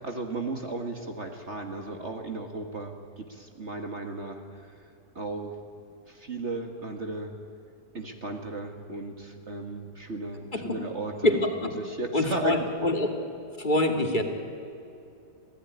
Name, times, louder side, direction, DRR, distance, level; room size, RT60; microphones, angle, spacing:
voice 1, 0.0-4.8 5.2-5.6 6.1-7.3 7.9-11.4 11.6-12.7, right 3 dB, 40° right, 4 dB, 2.0 m, -35 dB
voice 2, 11.2-11.6 12.1-13.1 13.6-14.2, left 1 dB, 30° left, 3 dB, 2.5 m, -24 dB
27.0 x 16.5 x 9.7 m, 2.7 s
omnidirectional pair, 1.8 m